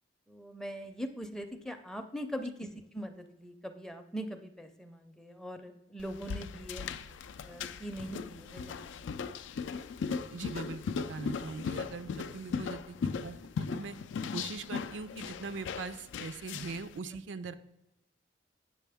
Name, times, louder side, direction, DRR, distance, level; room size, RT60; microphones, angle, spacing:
voice 1, 0.3-6.9 7.4-8.9, equal, 5° left, 7 dB, 0.5 m, -41 dB
sound 1, 6.0-16.9, left 5 dB, 80° left, 0.4 m, -38 dB
voice 2, 10.3-14.0 14.3-17.5, right 4 dB, 80° right, 12 dB, 0.4 m, -41 dB
8.4 x 6.1 x 3.4 m, 0.93 s
head